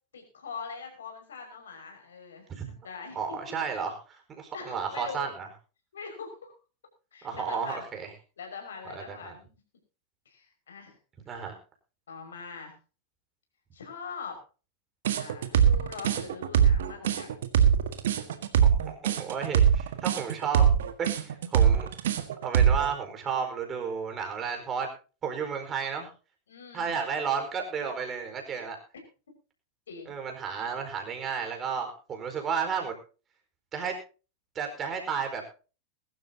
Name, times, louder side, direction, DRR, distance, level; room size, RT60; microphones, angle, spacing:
voice 1, 0.1-3.4 4.5-5.2 5.9-6.5 7.1-7.9 8.4-9.6 10.3-11.0 12.1-12.8 13.7-14.4 15.2-17.4 26.5-27.0 29.9-30.1, left 5 dB, 65° left, 4 dB, 5.6 m, -42 dB
voice 2, 3.1-5.5 7.2-8.1 8.9-9.3 11.2-11.5 18.9-20.7 21.0-21.9 22.4-24.9 25.2-26.1 26.7-28.8 30.1-32.9 33.7-33.9 34.5-35.4, right 6 dB, 25° right, 4 dB, 4.6 m, -32 dB
sound 1, 15.0-22.9, right 8 dB, 60° right, 1.7 m, -22 dB
21.5 x 12.5 x 2.8 m, 0.35 s
figure-of-eight pair, 90°, 0 cm